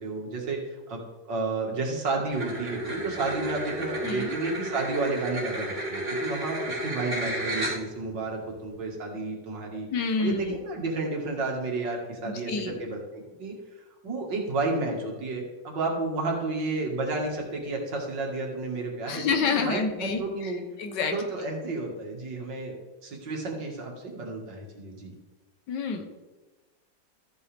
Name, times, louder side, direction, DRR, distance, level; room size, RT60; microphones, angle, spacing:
voice 1, 0.0-9.9 10.2-13.5 14.0-20.6 21.1-22.8 23.0-25.1, right 3 dB, 75° right, 0 dB, 2.5 m, -31 dB
sound 1, 2.3-8.1, right 1 dB, 30° right, 3.5 m, -32 dB
voice 2, 4.0-4.3 9.9-10.6 12.3-12.8 19.1-20.5 20.8-21.2 25.7-26.0, left 5 dB, 70° left, 6 dB, 1.7 m, -28 dB
13.5 x 7.7 x 3.5 m, 1.2 s
omnidirectional pair, 2.0 m